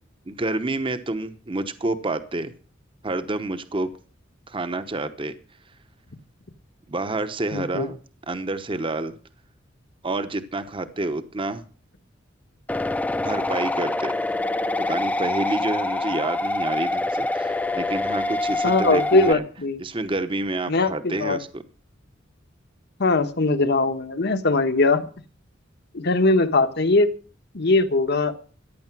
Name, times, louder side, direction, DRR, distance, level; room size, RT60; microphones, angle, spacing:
voice 1, 0.3-2.5 3.0-3.9 4.5-5.3 6.9-8.0 8.3-9.1 10.0-11.6 13.1-14.2 14.9-19.4 19.8-21.6, right 2 dB, 25° right, 11 dB, 1.0 m, -28 dB
voice 2, 7.5-7.9 18.6-19.8 20.7-21.4 23.0-25.1 25.9-27.1 27.5-28.4, left 2 dB, 60° left, 9 dB, 1.3 m, -20 dB
sound 1, 12.7-19.3, left 2 dB, 10° left, 0.6 m, -25 dB
15.0 x 10.0 x 6.1 m, 0.41 s
head